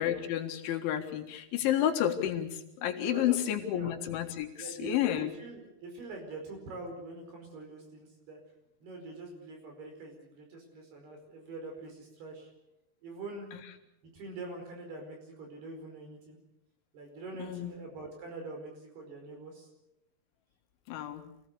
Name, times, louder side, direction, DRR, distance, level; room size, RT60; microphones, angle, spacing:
voice 1, 0.0-2.5 2.8-4.5 4.8-5.3 17.4-17.7 20.9-21.2, left 11 dB, 75° left, 4 dB, 4.0 m, -30 dB
voice 2, 3.0-3.9 4.6-8.4 8.8-12.5 13.0-13.6 14.0-16.4 16.9-19.7, right 2 dB, 55° right, 3 dB, 6.7 m, -44 dB
27.0 x 18.0 x 6.9 m, 0.84 s
omnidirectional pair, 5.5 m